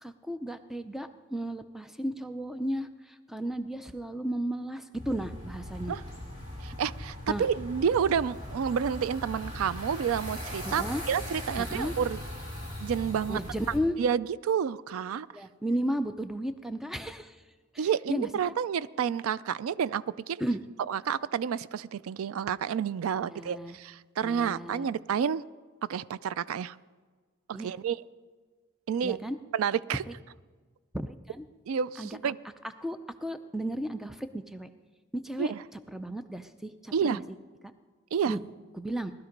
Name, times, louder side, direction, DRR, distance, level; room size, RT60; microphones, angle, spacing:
voice 1, 0.0-6.0 7.3-7.4 10.7-11.0 11.6-11.9 13.3-14.0 15.3-17.4 17.7-18.5 20.4-20.6 23.2-23.8 24.2-24.9 27.5-27.7 29.0-29.4 30.1-30.2 30.9-31.5 32.0-32.3 32.8-34.7 35.2-37.4 38.3-38.4 38.7-39.1, right 1 dB, ahead, 10 dB, 0.5 m, -34 dB
sound 1, 4.9-13.8, left 1 dB, 25° right, 3.9 m, -39 dB
voice 2, 6.6-12.2 12.8-13.4 14.0-15.3 17.8-20.4 20.9-25.4 25.8-26.8 27.5-28.0 28.9-29.2 29.5-30.0 31.7-32.4 35.4-35.6 36.9-37.2 38.1-38.3, right 7 dB, 85° right, 19 dB, 0.4 m, -29 dB
18.5 x 12.5 x 5.2 m, 1.5 s
head